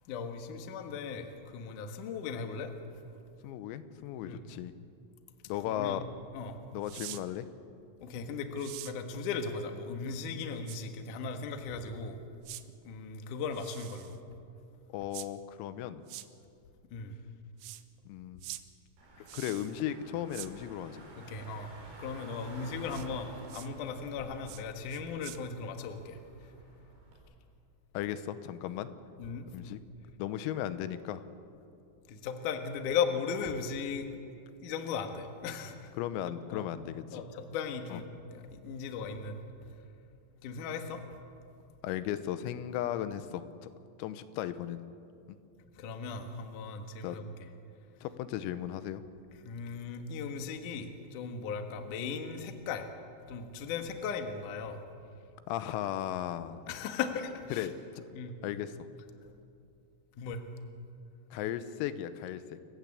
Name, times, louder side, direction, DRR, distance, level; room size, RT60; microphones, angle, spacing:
voice 1, 0.1-2.7 4.2-4.4 5.7-6.0 6.3-6.6 8.0-12.2 12.8-14.2 16.9-17.2 21.2-21.7 22.0-26.2 29.2-29.5 32.1-34.1 34.6-35.9 36.5-36.7 37.1-38.0 38.3-39.7 40.4-41.0 45.8-47.3 49.4-52.9 53.3-54.8 56.7-57.7 58.1-58.3 60.2-60.4, left 5 dB, 70° left, 6 dB, 2.0 m, -37 dB
voice 2, 3.4-4.7 5.5-6.0 6.7-7.5 14.9-16.0 18.1-18.5 19.3-21.0 28.0-28.9 29.5-29.8 30.2-31.2 36.0-37.2 37.9-38.0 41.8-43.7 44.0-44.8 47.0-47.2 48.0-49.0 55.5-56.6 57.5-58.1 58.4-58.7 61.3-62.4, left 11 dB, 90° left, 12 dB, 3.6 m, -36 dB
sound 1, 6.8-7.2 8.6-8.9 10.7-10.8 12.4-12.6 13.5-14.2 15.1-15.3 16.1-16.3 17.6-17.8 18.4-18.6 19.3-19.8 20.3-20.5 22.9-23.1 23.5-23.7 24.5-24.6 24.9-25.4, right 16 dB, 80° right, 3.2 m, -44 dB
Car / Engine, 19.0-27.2, right 2 dB, 65° right, 7.0 m, -51 dB
28.5 x 15.5 x 8.4 m, 2.6 s
omnidirectional pair, 5.9 m